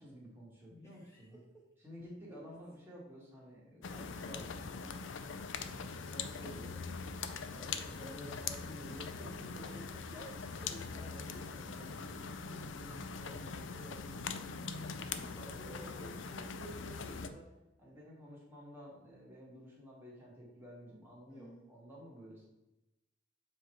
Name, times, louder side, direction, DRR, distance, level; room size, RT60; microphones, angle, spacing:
voice 1, 0.0-1.4 1.8-5.0 5.6-6.8 7.5-10.4 10.9-14.2 14.5-17.5 17.8-22.5, equal, 10° right, -5 dB, 1.7 m, -52 dB
voice 2, 0.8-1.7 2.3-2.5 5.8-6.2 10.1-11.5 15.6-16.3 21.3-21.7, right 1 dB, 15° left, -3 dB, 0.6 m, -55 dB
sound 1, 3.8-17.3, left 5 dB, 80° left, 0.5 m, -42 dB
7.1 x 3.3 x 4.5 m, 0.97 s
head